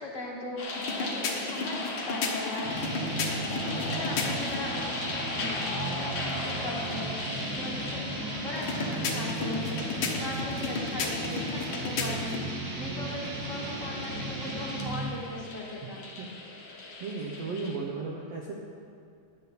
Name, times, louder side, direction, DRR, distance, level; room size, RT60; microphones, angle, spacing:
voice 1, 0.0-16.0, left 1 dB, 30° left, -4 dB, 1.4 m, -39 dB
sound 1, 0.6-17.8, left 2 dB, 50° left, 2.8 m, -38 dB
sound 2, 0.8-4.6 8.6-12.5, left 4 dB, 75° left, 1.1 m, -34 dB
sound 3, 2.6-15.2, right 2 dB, 50° right, 1.5 m, -35 dB
voice 2, 17.0-18.5, right 4 dB, 70° right, -1 dB, 1.5 m, -35 dB
16.5 x 11.0 x 4.2 m, 2.5 s
omnidirectional pair, 4.2 m